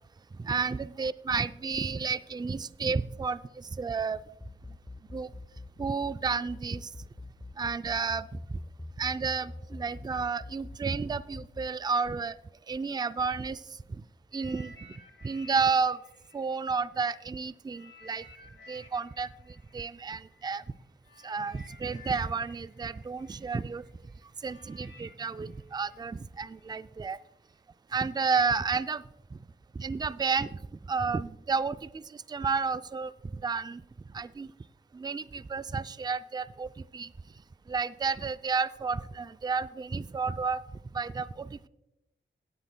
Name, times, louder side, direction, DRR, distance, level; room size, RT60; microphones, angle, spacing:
voice 1, 0.4-4.2 5.1-5.3 5.8-6.9 7.6-8.3 9.0-12.3 12.7-13.6 13.9-14.0 14.3-14.7 15.2-16.0 16.3-18.2 18.7-19.3 19.7-20.6 21.2-23.8 24.4-27.2 27.9-29.0 29.3-29.4 29.8-30.6 30.9-33.8 34.1-34.5 34.9-37.1 37.7-40.6 40.9-41.7, right 5 dB, 20° right, 14 dB, 0.3 m, -31 dB
sound 1, 4.3-11.7, left 2 dB, 15° left, 0.8 m, -43 dB
sound 2, 14.3-17.2 17.7-26.7 27.4-27.6, left 2 dB, 80° left, 1.7 m, -55 dB
17.0 x 9.8 x 2.2 m, 0.88 s
cardioid pair, 50°, 20 cm